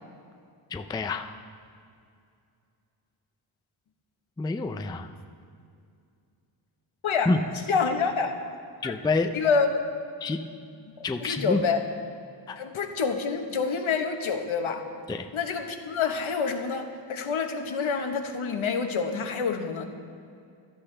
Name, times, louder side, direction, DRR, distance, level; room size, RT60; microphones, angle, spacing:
voice 1, 0.7-1.3 4.4-5.1 7.3-7.4 8.8-9.3 10.2-10.4 11.0-11.6 12.5-12.6 15.1-15.3, left 3 dB, 10° left, 7 dB, 0.3 m, -27 dB
voice 2, 7.7-8.4 8.8-8.9 9.3-9.7 11.2-11.8 12.6-14.8 15.3-19.9, left 5 dB, 80° left, 4 dB, 1.2 m, -27 dB
15.5 x 12.0 x 3.3 m, 2.4 s
wide cardioid pair, 120°, 48 cm